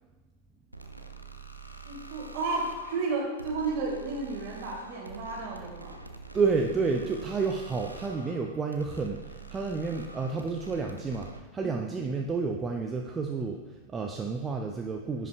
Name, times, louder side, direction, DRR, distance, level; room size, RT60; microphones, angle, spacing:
sound 1, 0.7-11.4, right 3 dB, 90° right, 0.5 m, -46 dB
voice 1, 1.8-6.0 11.6-11.7, right 3 dB, 45° right, -1 dB, 2.0 m, -32 dB
voice 2, 6.3-15.3, right 4 dB, 20° right, 2 dB, 0.4 m, -30 dB
10.0 x 5.6 x 2.3 m, 1.2 s
figure-of-eight pair, 90°, 0 cm